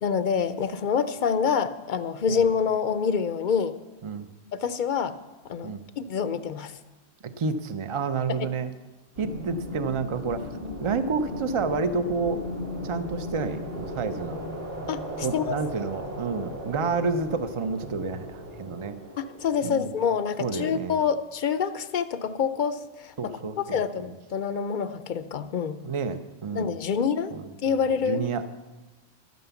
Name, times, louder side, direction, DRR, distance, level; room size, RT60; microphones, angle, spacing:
voice 1, 0.0-3.8 4.5-5.1 5.5-6.8 14.9-15.6 19.2-25.8 26.5-27.3 27.6-28.3, left 6 dB, 55° left, 12 dB, 0.7 m, -27 dB
voice 2, 7.4-8.7 9.2-10.5 10.8-12.4 12.8-14.4 15.2-19.0 19.6-19.9 20.4-21.0 23.2-24.1 25.8-26.7 27.3-27.5 28.0-28.5, right 4 dB, 35° right, 10 dB, 0.6 m, -29 dB
sound 1, 9.1-19.7, left 1 dB, 50° right, 3.0 m, -36 dB
12.5 x 9.3 x 7.0 m, 1.2 s
omnidirectional pair, 1.1 m